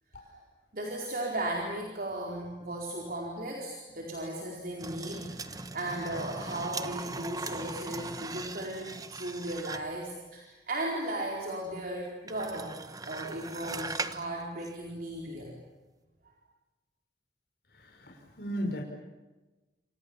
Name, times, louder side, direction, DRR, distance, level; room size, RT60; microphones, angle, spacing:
voice 1, 0.7-12.8 13.0-15.6 16.2-16.3, right 1 dB, 55° right, -1 dB, 4.5 m, -36 dB
sound 1, 4.8-10.0 12.3-14.3 14.6-14.7, right 3 dB, 20° right, 1.2 m, -39 dB
voice 2, 17.7-18.8, equal, 60° left, 0 dB, 5.4 m, -36 dB
28.0 x 28.0 x 7.2 m, 1.1 s
head